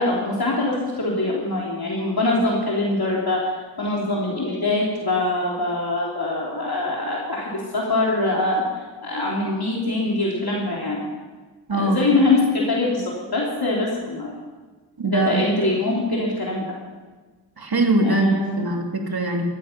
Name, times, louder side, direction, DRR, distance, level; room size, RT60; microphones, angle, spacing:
voice 1, 0.0-3.5 3.8-8.6 9.0-11.0 11.7-14.3 15.1-16.6 18.0-18.6, left 2 dB, 55° left, -3 dB, 3.2 m, -23 dB
voice 2, 11.7-12.0 15.0-15.4 17.6-19.4, right 2 dB, 55° right, 2 dB, 2.7 m, -22 dB
14.5 x 12.5 x 5.9 m, 1.3 s
cardioid pair, 50°, 45 cm